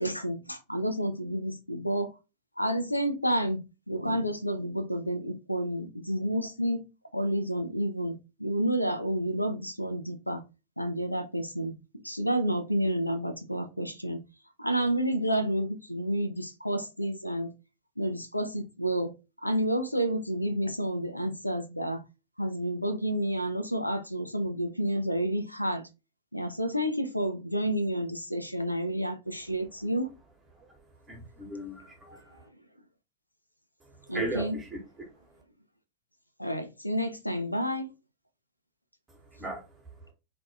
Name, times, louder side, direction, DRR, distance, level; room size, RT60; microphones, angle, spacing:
voice 1, 0.0-2.1 2.6-6.9 7.1-10.4 10.8-11.8 12.0-14.2 14.6-17.5 18.0-19.1 19.4-22.0 22.4-25.8 26.3-30.1 34.1-34.6 36.4-37.9, right 1 dB, 90° left, 9 dB, 0.3 m, -30 dB
voice 2, 31.1-32.4 34.1-34.8 39.4-39.6, right 1 dB, 15° right, 1 dB, 1.0 m, -36 dB
2.5 x 2.1 x 2.6 m, 0.27 s
figure-of-eight pair, 90°, 0 cm